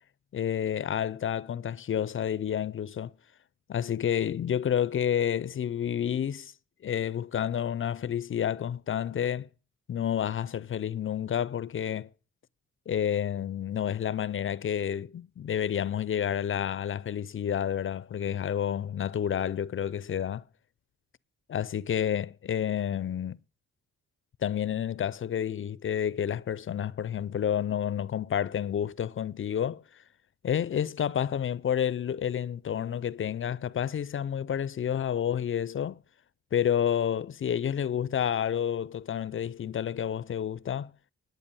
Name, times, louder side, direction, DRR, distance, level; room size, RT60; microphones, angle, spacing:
voice 1, 0.3-3.1 3.7-6.5 6.8-9.5 9.9-12.1 12.9-20.4 21.5-23.4 24.4-29.8 30.4-36.0 36.5-40.9, left 9 dB, 45° left, 0.5 m, -30 dB
11.0 x 8.0 x 6.9 m
cardioid pair, 95°, 29 cm